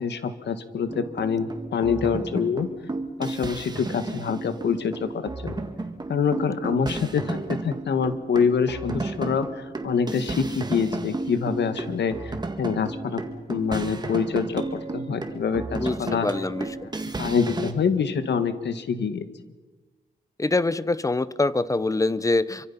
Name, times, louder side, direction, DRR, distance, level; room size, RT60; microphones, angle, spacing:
voice 1, 0.0-2.7 3.2-5.5 6.1-13.2 13.5-14.6 14.9-16.3 17.2-19.2, left 6 dB, 85° left, 9 dB, 1.9 m, -26 dB
sound 1, 0.9-17.7, right 3 dB, 25° right, 1.9 m, -33 dB
voice 2, 15.7-16.7 17.0-17.1 20.4-22.7, left 2 dB, 20° left, 16 dB, 0.7 m, -24 dB
27.0 x 24.5 x 5.7 m, 1.3 s
wide cardioid pair, 160°, 18 cm